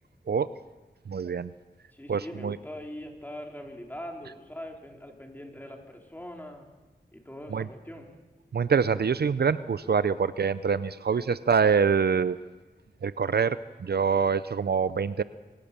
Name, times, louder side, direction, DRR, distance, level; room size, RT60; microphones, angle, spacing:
voice 1, 1.1-1.5 2.1-2.6 7.5-7.7 8.5-12.4 13.0-15.2, right 6 dB, 65° right, 15 dB, 0.6 m, -25 dB
voice 2, 1.9-6.7 7.1-8.1, left 1 dB, 10° left, 1 dB, 3.7 m, -42 dB
24.5 x 17.5 x 6.9 m, 1.2 s
wide cardioid pair, 75°, 18 cm